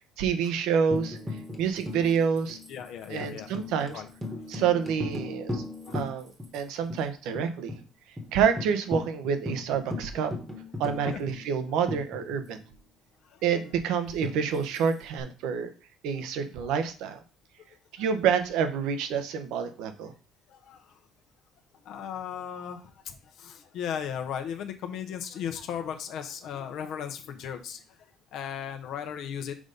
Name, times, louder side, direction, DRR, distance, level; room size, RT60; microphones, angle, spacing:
voice 1, 0.2-1.2 1.6-2.6 3.1-4.0 4.5-5.6 5.9-7.7 8.3-10.3 10.8-12.6 13.4-15.7 16.0-17.2 18.0-20.1, right 7 dB, 80° right, 9 dB, 1.0 m, -28 dB
Tambourine, 0.9-6.6 6.9-7.0 7.3-7.8 8.2-8.3 8.6-12.7 14.2-15.2, left 2 dB, 10° right, 1.2 m, -38 dB
voice 2, 2.7-3.5 3.9-4.1 4.5-4.6 5.8-6.1 11.0-11.2 13.2-13.4 18.0-18.1 20.5-21.0 21.8-28.0 28.3-29.5, left 8 dB, 60° left, 6 dB, 0.9 m, -36 dB
6.2 x 4.0 x 5.2 m, 0.34 s
cardioid pair, 150°, 0 cm